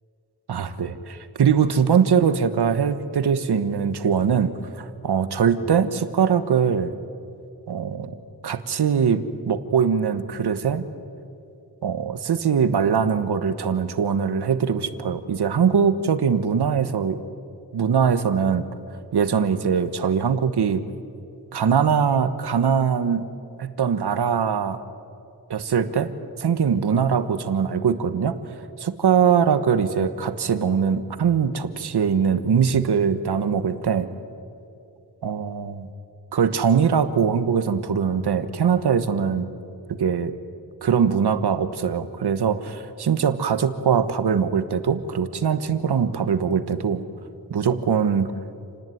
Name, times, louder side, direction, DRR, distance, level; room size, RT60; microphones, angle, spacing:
voice 1, 0.5-6.9 7.7-8.2 8.4-10.8 11.8-17.2 17.7-18.7 19.1-20.8 21.5-23.3 23.6-24.8 25.5-26.1 26.4-34.1 35.2-35.9 36.3-39.5 39.9-40.3 40.8-47.0 47.5-48.3, right 7 dB, 85° right, 12 dB, 1.3 m, -22 dB
29.0 x 19.0 x 9.3 m, 2.6 s
wide cardioid pair, 85°, 39 cm